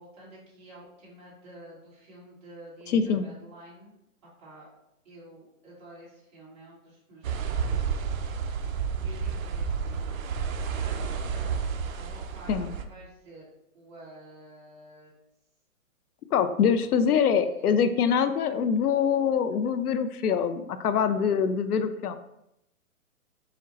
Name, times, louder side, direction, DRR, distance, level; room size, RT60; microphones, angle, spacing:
voice 1, 0.0-3.9 4.4-4.7 5.0-8.4 9.0-10.3 10.7-11.7 12.0-13.5 13.7-15.1 17.2-17.7, right 1 dB, 25° right, -7 dB, 1.5 m, -50 dB
voice 2, 2.9-3.3 12.5-12.7 16.3-22.2, left 7 dB, 85° left, 10 dB, 0.6 m, -24 dB
sound 1, 7.2-12.8, right 6 dB, 65° right, 0.6 m, -30 dB
5.0 x 2.1 x 4.0 m, 0.82 s
hypercardioid pair, 170°, 44 cm